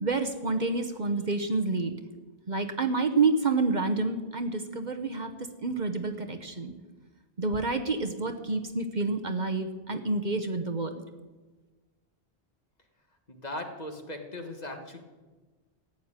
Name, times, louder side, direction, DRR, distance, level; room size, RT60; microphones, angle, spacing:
voice 1, 0.0-2.0 2.5-5.3 5.6-6.7 7.4-11.0, right 3 dB, 45° right, 6 dB, 1.1 m, -28 dB
voice 2, 13.3-15.0, left 1 dB, 40° left, 4 dB, 1.8 m, -38 dB
15.0 x 9.1 x 8.9 m, 1.3 s
omnidirectional pair, 1.1 m